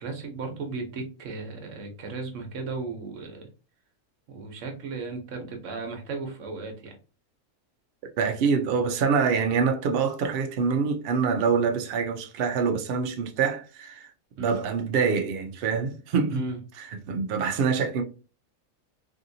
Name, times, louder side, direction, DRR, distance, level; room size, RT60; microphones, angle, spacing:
voice 1, 0.0-3.5 4.3-7.0 14.4-14.6 16.3-16.6, right 3 dB, 60° right, 1.1 m, -35 dB
voice 2, 8.2-14.1 14.4-16.4 16.8-18.0, right 5 dB, 80° right, 0.5 m, -25 dB
3.4 x 2.6 x 2.6 m
omnidirectional pair, 1.6 m